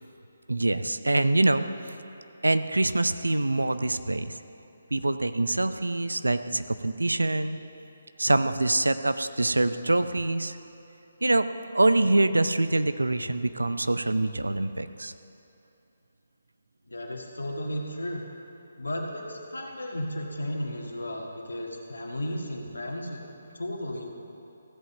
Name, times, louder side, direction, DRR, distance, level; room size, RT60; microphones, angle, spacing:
voice 1, 0.5-1.9 2.4-4.4 4.9-7.6 8.2-10.6 11.2-11.5 11.7-15.1, right 2 dB, 80° right, 11 dB, 0.5 m, -25 dB
voice 2, 16.9-18.2 18.8-24.1, left 1 dB, 75° left, 0 dB, 1.7 m, -34 dB
15.5 x 5.4 x 7.0 m, 2.8 s
figure-of-eight pair, 145°, 0 cm